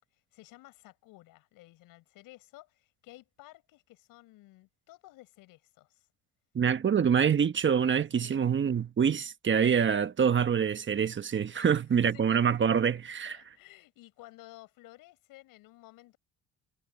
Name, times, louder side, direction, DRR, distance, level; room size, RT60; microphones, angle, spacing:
voice 1, 0.1-6.1 7.0-7.4 8.1-8.5 11.6-12.4 13.2-16.2, left 18 dB, 80° left, 7.5 m, -54 dB
voice 2, 6.5-13.3, right 7 dB, 35° right, 1.2 m, -26 dB
cardioid pair, 95°, 33 cm